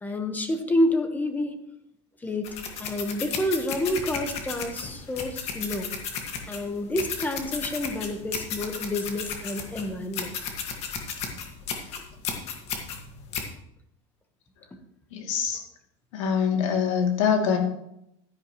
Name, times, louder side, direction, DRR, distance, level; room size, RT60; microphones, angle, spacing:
voice 1, 0.0-1.5 2.2-5.9 6.5-10.3, left 1 dB, 10° left, 7 dB, 1.2 m, -28 dB
sound 1, 2.4-13.5, left 6 dB, 40° left, 1.8 m, -34 dB
voice 2, 15.1-15.6 16.1-17.6, left 7 dB, 80° left, 2 dB, 2.6 m, -24 dB
12.5 x 10.5 x 3.1 m, 0.78 s
supercardioid pair, 150°, 16 cm